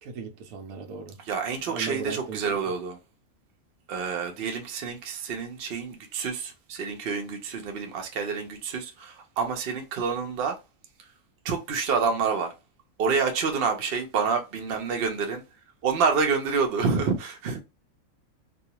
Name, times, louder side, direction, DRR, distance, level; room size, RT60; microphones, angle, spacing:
voice 1, 0.0-1.2 1.7-2.7, right 6 dB, 85° right, 1.0 m, -37 dB
voice 2, 1.3-3.0 3.9-10.6 11.4-12.5 13.0-15.4 15.8-17.6, right 5 dB, 55° right, 0.7 m, -28 dB
2.4 x 2.3 x 2.8 m
omnidirectional pair, 1.5 m